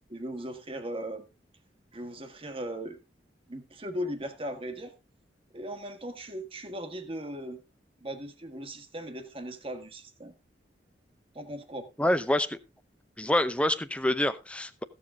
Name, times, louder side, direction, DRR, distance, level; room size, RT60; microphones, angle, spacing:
voice 1, 0.1-1.3 1.9-3.0 3.5-4.9 5.5-7.6 8.0-10.3 11.3-11.9, equal, 30° right, 1.4 m, -38 dB
voice 2, 12.0-12.6 13.2-14.8, left 1 dB, 5° left, 0.7 m, -26 dB
15.5 x 7.4 x 3.6 m
head